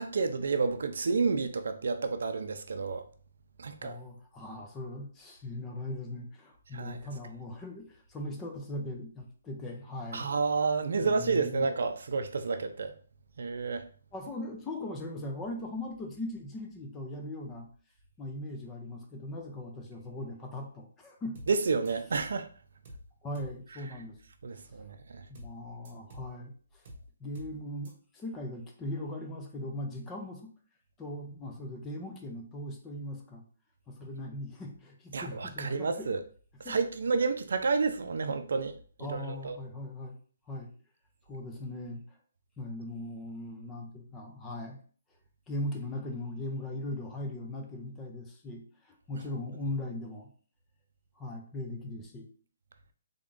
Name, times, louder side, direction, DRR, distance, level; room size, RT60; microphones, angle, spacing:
voice 1, 0.0-3.0 3.6-4.0 6.7-7.0 10.1-12.9 13.4-13.9 21.5-22.5 24.4-25.2 35.1-36.2 36.6-38.7 39.0-39.6, right 4 dB, 65° right, 0.5 m, -30 dB
voice 2, 3.8-10.3 11.0-11.7 14.1-17.7 18.2-21.4 23.2-24.2 25.3-26.8 27.2-30.5 31.0-33.4 33.9-36.1 36.6-36.8 39.0-40.2 40.5-40.7 41.3-42.2 42.6-44.8 45.5-50.3 51.2-52.3, left 1 dB, 10° left, 0.5 m, -39 dB
sound 1, 21.4-21.6 21.9-22.3 22.9-23.1 23.4-23.6 25.4-25.6 25.9-26.3 26.9-27.1 27.4-27.6 27.9-28.0, equal, 40° right, 0.9 m, -47 dB
3.6 x 3.5 x 2.5 m
hypercardioid pair, 175°, 0 cm